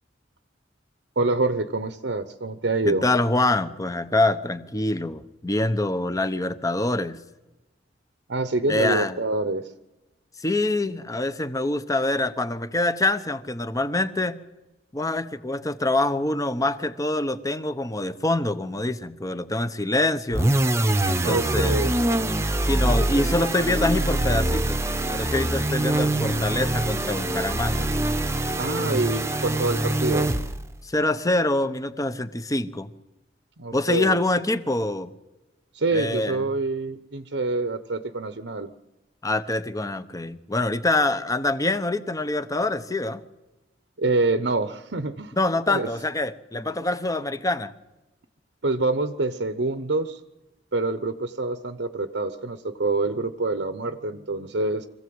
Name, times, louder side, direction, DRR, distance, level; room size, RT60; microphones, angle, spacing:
voice 1, 1.2-3.0 8.3-9.7 21.2-21.9 28.6-30.3 33.6-34.2 35.7-38.7 44.0-45.3 45.7-45.9 48.6-50.2 50.7-54.9, right 2 dB, 75° right, 10 dB, 1.0 m, -26 dB
voice 2, 2.8-7.2 8.7-9.1 10.4-14.4 14.9-20.5 21.1-22.0 22.6-24.8 25.1-27.9 30.8-32.9 33.7-35.1 35.9-36.4 39.2-43.2 45.4-47.7, left 2 dB, 20° left, 12 dB, 1.0 m, -25 dB
sound 1, 20.3-30.7, right 1 dB, 15° right, 1.0 m, -24 dB
25.0 x 16.0 x 7.8 m, 1.0 s
head